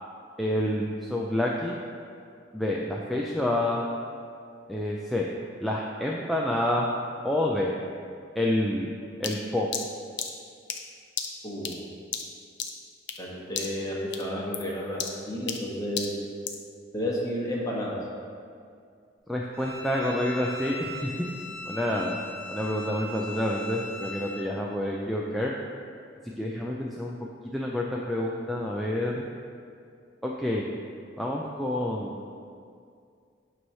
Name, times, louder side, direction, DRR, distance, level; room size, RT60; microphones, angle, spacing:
voice 1, 0.4-1.8 2.5-3.8 4.7-5.3 5.6-6.9 7.2-7.7 8.4-8.9 9.2-9.7 19.3-21.1 21.7-22.2 22.5-25.5 26.4-27.1 27.5-29.2 30.2-30.6 31.2-32.2, left 1 dB, ahead, -4 dB, 0.4 m, -28 dB
sound 1, 9.2-13.3 13.5-13.9 14.1-16.7, left 7 dB, 60° left, 0.6 m, -35 dB
voice 2, 11.4-11.8 13.2-15.0 15.3-16.1 16.9-18.0, equal, 20° left, -4 dB, 1.2 m, -31 dB
Bowed string instrument, 19.5-24.4, left 2 dB, 55° right, 0.8 m, -39 dB
8.9 x 3.2 x 5.5 m, 2.3 s
head